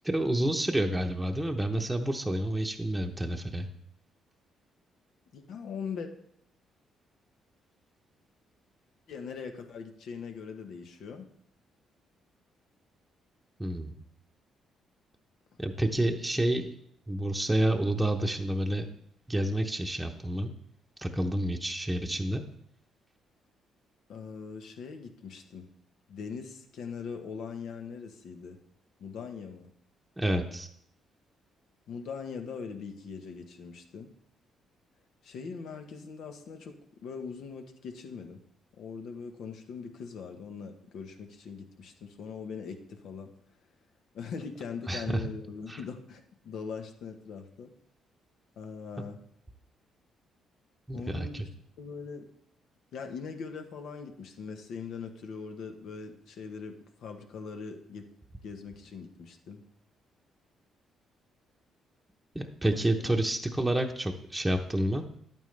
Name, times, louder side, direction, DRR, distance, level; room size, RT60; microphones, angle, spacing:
voice 1, 0.0-3.7 13.6-13.9 15.6-16.7 17.1-18.9 19.3-20.5 21.0-22.4 30.2-30.7 44.9-45.3 45.7-45.8 49.0-49.1 50.9-51.4 62.3-65.0, right 1 dB, 10° right, 2 dB, 0.9 m, -29 dB
voice 2, 5.3-6.1 9.1-11.3 24.1-25.7 26.1-28.6 29.0-29.7 31.9-34.1 35.2-36.7 37.0-38.4 38.7-43.3 44.1-47.7 48.6-49.2 50.9-51.4 51.8-52.2 52.9-56.7 57.0-58.0 58.4-59.6 62.7-63.1, left 5 dB, 75° left, 5 dB, 1.2 m, -41 dB
10.5 x 9.0 x 3.3 m, 0.68 s
cardioid pair, 85°, 0 cm